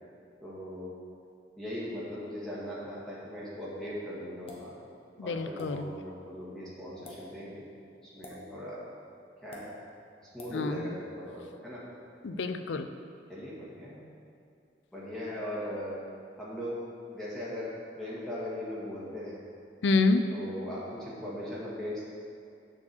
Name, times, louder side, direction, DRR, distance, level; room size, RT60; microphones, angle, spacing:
voice 1, 0.4-1.0 1.6-4.7 5.2-7.6 8.1-8.8 9.4-9.7 10.2-11.8 13.3-14.1 14.9-15.9 16.4-16.8 17.1-19.3 20.3-22.0, left 1 dB, 5° left, -9 dB, 1.6 m, -39 dB
sound 1, 4.5-4.7 5.6-5.7 6.9-7.2 8.2-8.4 9.5-9.7 10.4-10.6, left 2 dB, 35° left, 1.2 m, -46 dB
voice 2, 5.2-5.9 10.5-11.0 12.2-12.9 19.8-20.2, left 3 dB, 70° left, 9 dB, 0.5 m, -27 dB
7.0 x 4.7 x 6.6 m, 2.5 s
head